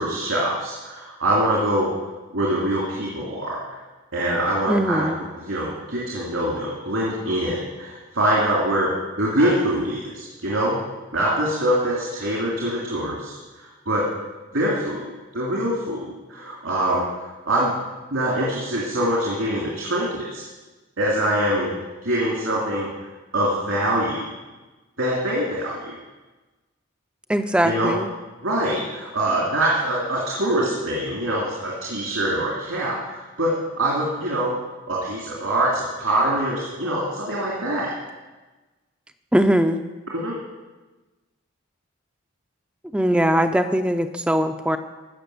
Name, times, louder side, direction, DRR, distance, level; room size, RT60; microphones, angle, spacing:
voice 1, 0.0-1.9 2.3-3.6 4.1-5.1 5.4-10.8 11.1-14.0 14.5-15.0 15.3-17.7 18.1-20.4 21.0-21.7 22.0-22.9 23.3-24.2 25.0-25.9 27.6-28.0 28.4-34.6 34.9-37.9 40.1-40.3, right 1 dB, 80° right, -5 dB, 3.2 m, -24 dB
voice 2, 4.7-5.2 27.3-28.1 39.3-39.8 42.9-44.8, equal, 5° right, 7 dB, 0.5 m, -20 dB
15.0 x 6.4 x 7.9 m, 1.2 s
head